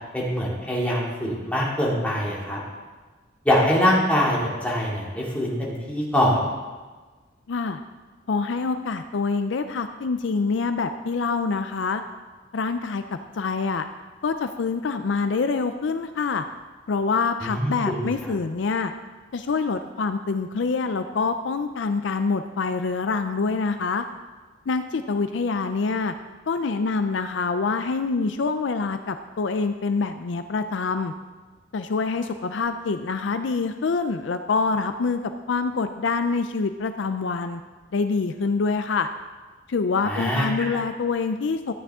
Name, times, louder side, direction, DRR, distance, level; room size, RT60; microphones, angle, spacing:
voice 1, 0.1-2.6 3.4-6.4 17.4-18.3 40.0-40.7, equal, 10° left, -5 dB, 2.5 m, -24 dB
voice 2, 8.3-12.0 12.5-13.8 14.2-16.5 16.9-18.9 19.3-24.0 24.7-26.1 26.5-31.1 31.7-37.6 37.9-39.1 39.7-41.7, left 4 dB, 70° left, 9 dB, 0.5 m, -26 dB
12.5 x 9.2 x 3.7 m, 1.3 s
head